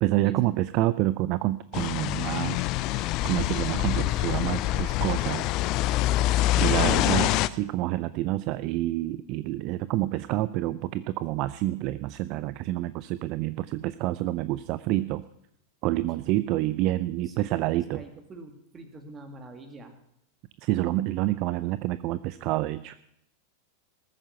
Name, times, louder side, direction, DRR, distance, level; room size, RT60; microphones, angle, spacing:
voice 1, 0.0-2.6 2.9-5.4 6.2-15.2 15.8-18.0 20.6-22.9, right 16 dB, 40° right, 16 dB, 0.4 m, -28 dB
sound 1, 1.7-7.5, left 15 dB, 40° left, 0.5 m, -25 dB
voice 2, 6.5-7.2 17.3-20.0, right 2 dB, 20° right, 6 dB, 2.2 m, -45 dB
19.0 x 9.3 x 5.5 m, 0.76 s
figure-of-eight pair, 90°, 0 cm